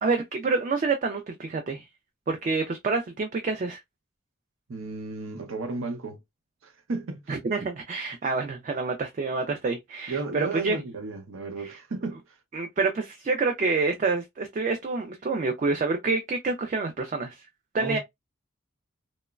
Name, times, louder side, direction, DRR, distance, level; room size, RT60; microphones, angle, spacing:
voice 1, 0.0-1.9 2.3-3.8 7.3-10.8 11.6-11.8 12.5-17.3 17.7-18.0, right 4 dB, 40° right, 0.3 m, -27 dB
voice 2, 4.7-6.2 6.6-7.3 10.1-12.2 17.8-18.0, right 3 dB, 85° right, 0.7 m, -33 dB
2.9 x 2.1 x 2.2 m
head